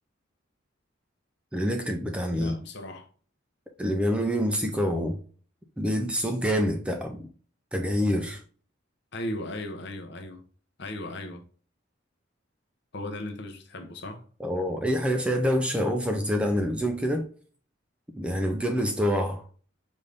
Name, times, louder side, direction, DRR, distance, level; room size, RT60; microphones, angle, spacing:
voice 1, 1.5-2.6 3.8-5.2 5.8-7.3 7.7-8.4 14.4-17.3 18.2-19.4, equal, 5° right, 0.4 m, -26 dB
voice 2, 2.3-3.1 9.1-10.4 10.8-11.4 12.9-14.2, left 1 dB, 55° left, 0.7 m, -36 dB
5.3 x 2.6 x 3.3 m
head